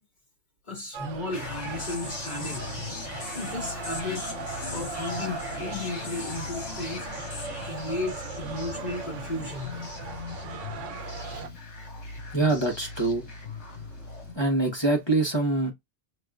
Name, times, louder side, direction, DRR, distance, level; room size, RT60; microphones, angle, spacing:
voice 1, 0.6-2.7 3.3-4.2 4.7-7.1 7.6-9.8 10.8-10.9 11.2-11.3 11.8-11.9, left 2 dB, 40° left, 2.1 m, -34 dB
sound 1, 0.9-11.5, right 5 dB, 85° right, 1.1 m, -39 dB
sound 2, 1.3-14.3, left 3 dB, 65° left, 1.8 m, -38 dB
voice 2, 12.3-13.8 14.3-15.7, right 2 dB, 25° left, 1.1 m, -25 dB
6.1 x 2.4 x 2.3 m
omnidirectional pair, 1.2 m